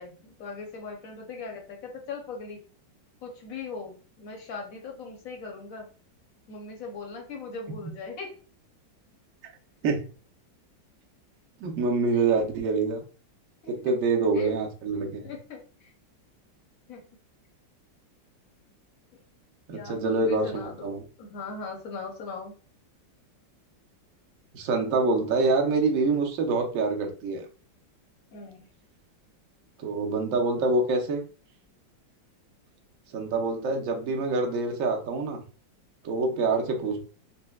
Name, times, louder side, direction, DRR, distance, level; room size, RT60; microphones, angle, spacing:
voice 1, 0.0-2.6 3.2-5.9 6.5-8.4 12.1-12.2 13.6-13.7 14.3-14.5 15.2-15.9 16.9-17.0 19.7-22.5 28.3-28.6, left 4 dB, 60° left, 1 dB, 1.0 m, -39 dB
voice 2, 11.6-13.0 13.7-15.2 19.7-21.0 24.5-27.4 29.8-31.2 33.1-35.4 36.0-37.0, right 3 dB, 65° right, 2 dB, 0.8 m, -26 dB
4.1 x 2.1 x 2.3 m, 0.37 s
omnidirectional pair, 2.0 m